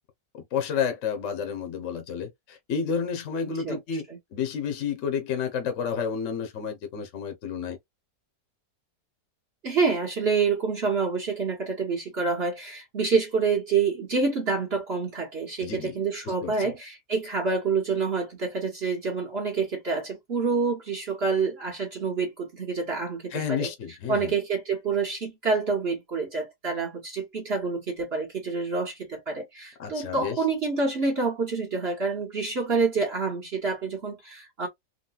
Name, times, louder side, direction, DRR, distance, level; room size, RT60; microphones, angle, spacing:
voice 1, 0.3-7.8 15.6-15.9 16.3-16.7 23.3-24.3 29.8-30.4, left 7 dB, 55° left, 1.0 m, -31 dB
voice 2, 9.6-23.7 24.1-34.7, right 4 dB, 45° right, 1.2 m, -27 dB
3.9 x 2.2 x 2.3 m
omnidirectional pair, 1.7 m